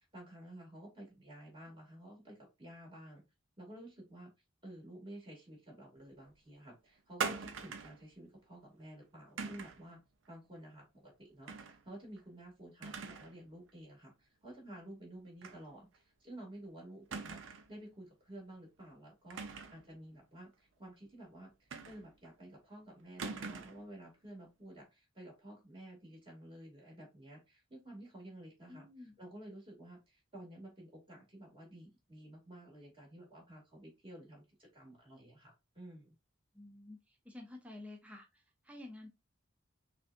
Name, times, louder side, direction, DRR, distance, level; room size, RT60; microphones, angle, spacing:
voice 1, 0.1-3.2 3.6-4.3 4.6-10.0 10.3-11.5 11.8-36.2, right 1 dB, 25° right, -3 dB, 2.3 m, -52 dB
sound 1, 7.2-8.0 9.4-9.8 11.5-11.8 12.2-12.3 12.8-13.4 13.7-13.8 15.4-15.6 15.9-16.0 17.1-17.7 19.3-19.9 21.7-22.3 23.2-23.9, right 5 dB, 70° right, 0.7 m, -42 dB
voice 2, 28.7-29.1 36.5-39.1, left 2 dB, 5° right, 2 dB, 0.6 m, -51 dB
6.0 x 2.6 x 2.5 m, 0.24 s
head